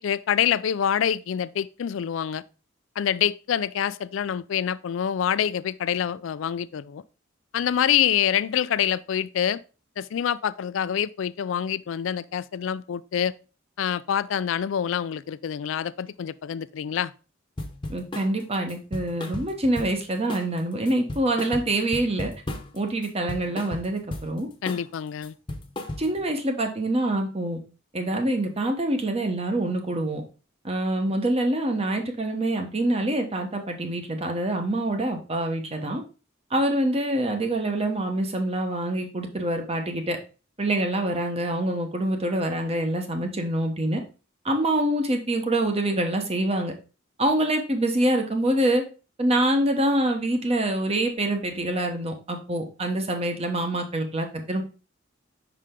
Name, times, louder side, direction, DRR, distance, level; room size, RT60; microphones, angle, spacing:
voice 1, 0.0-2.4 3.0-7.0 7.5-9.6 10.0-13.3 13.8-17.1 24.6-25.3, left 9 dB, 70° left, 0.3 m, -26 dB
sound 1, 17.6-18.3 18.7-20.0 20.3-20.6 20.9-22.8 23.0-24.3 24.7-24.9 25.2-26.3, left 1 dB, 25° left, 0.9 m, -35 dB
voice 2, 17.9-22.3 22.7-24.5 26.0-27.6 27.9-30.2 30.6-36.0 36.5-40.2 40.6-44.0 44.4-46.7 47.2-48.8 49.2-54.6, right 1 dB, 30° right, 1.0 m, -25 dB
5.6 x 4.9 x 3.7 m
head